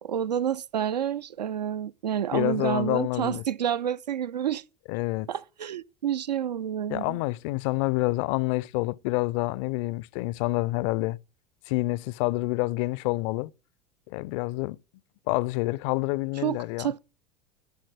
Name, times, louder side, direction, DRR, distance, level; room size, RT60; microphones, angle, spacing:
voice 1, 0.0-4.6 5.3-7.2 16.4-17.0, right 9 dB, 75° right, 0.5 m, -29 dB
voice 2, 2.3-3.4 4.9-5.3 6.9-11.2 11.7-13.5 14.1-14.8 15.3-16.9, left 21 dB, 50° left, 0.5 m, -27 dB
11.5 x 6.4 x 7.6 m
figure-of-eight pair, 75°, 21 cm